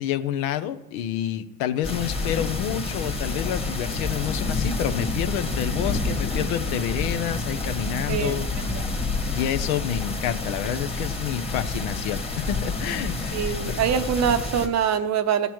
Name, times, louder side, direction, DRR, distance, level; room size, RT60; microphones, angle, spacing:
voice 1, 0.0-8.5 8.7-9.0 9.3-13.7, left 11 dB, 70° left, 10 dB, 0.8 m, -29 dB
sound 1, 1.8-14.7, left 3 dB, 15° left, 1.5 m, -28 dB
voice 2, 8.1-8.9 13.3-15.5, right 8 dB, 35° right, 10 dB, 0.7 m, -24 dB
15.0 x 6.8 x 3.1 m, 0.94 s
hypercardioid pair, 80°, 45 cm